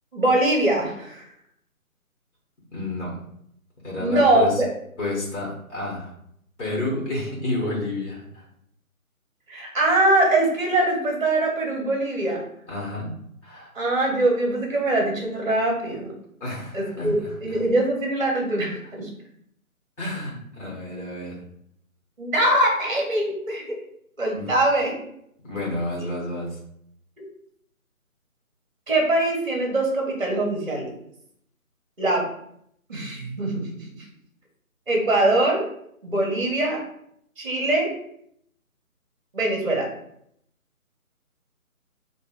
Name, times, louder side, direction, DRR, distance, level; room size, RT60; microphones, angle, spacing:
voice 1, 0.1-1.3 4.0-4.7 9.5-12.4 13.7-16.1 16.7-19.1 22.2-23.8 24.2-24.9 27.2-27.3 28.9-30.9 32.0-32.2 32.9-33.9 34.9-35.6 36.0-36.8 37.4-37.9 39.3-39.9, right 1 dB, 40° right, 0 dB, 0.8 m, -22 dB
voice 2, 2.7-3.2 3.8-4.6 5.0-6.1 6.6-8.4 12.7-13.7 16.4-17.6 20.0-21.4 24.3-24.5 25.4-26.6, left 1 dB, 50° left, -3 dB, 1.5 m, -30 dB
5.3 x 2.6 x 2.4 m, 0.71 s
figure-of-eight pair, 170°, 43 cm